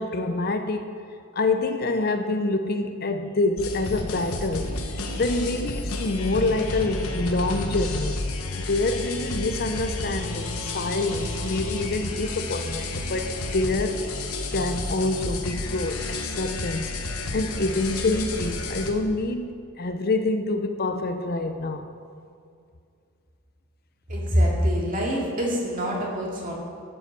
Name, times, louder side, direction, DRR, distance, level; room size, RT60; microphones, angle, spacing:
voice 1, 0.0-4.7 5.1-8.2 8.6-14.1 14.5-16.9 17.3-21.9, left 2 dB, 45° left, 7 dB, 0.6 m, -26 dB
sound 1, 3.6-18.9, left 2 dB, 85° left, 1.3 m, -31 dB
voice 2, 24.1-26.5, equal, 35° right, -3 dB, 2.3 m, -25 dB
12.0 x 7.8 x 6.7 m, 2.4 s
head